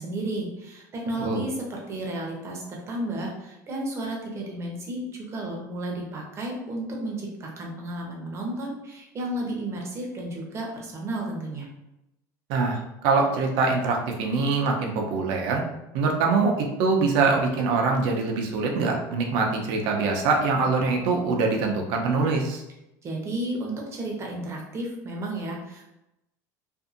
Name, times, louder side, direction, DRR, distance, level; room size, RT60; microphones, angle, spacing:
voice 1, 0.0-11.7 23.0-25.8, right 1 dB, 30° right, -1 dB, 0.8 m, -32 dB
voice 2, 12.5-15.6 15.9-22.6, right 4 dB, 70° right, 1 dB, 0.6 m, -24 dB
2.6 x 2.5 x 2.5 m, 0.91 s
supercardioid pair, 115°, 9 cm